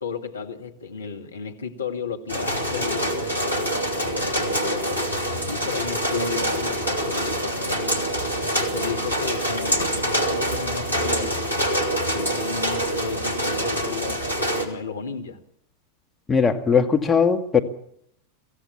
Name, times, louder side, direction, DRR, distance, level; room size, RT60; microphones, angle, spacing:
voice 1, 0.0-8.1 8.5-11.4 12.1-15.4, left 6 dB, 75° left, 1.9 m, -34 dB
sound 1, 2.3-14.7, equal, 90° left, 3.0 m, -25 dB
voice 2, 16.3-17.6, left 6 dB, 15° left, 2.1 m, -19 dB
24.5 x 16.0 x 7.1 m
figure-of-eight pair, 90°, 0 cm